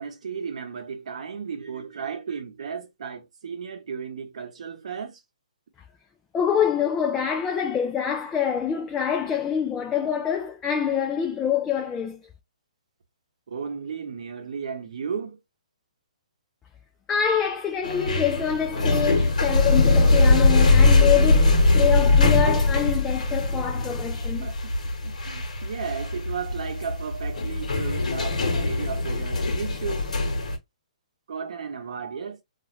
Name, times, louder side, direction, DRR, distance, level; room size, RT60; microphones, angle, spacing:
voice 1, 0.0-5.2 13.5-15.4 24.4-24.7 25.0-30.0 31.3-32.4, right 6 dB, 65° right, 0.9 m, -34 dB
voice 2, 6.3-12.2 17.1-24.5, left 8 dB, 10° left, 0.4 m, -25 dB
sound 1, 17.8-30.6, left 2 dB, 75° left, 1.2 m, -21 dB
2.5 x 2.4 x 3.0 m
hypercardioid pair, 160°, 4 cm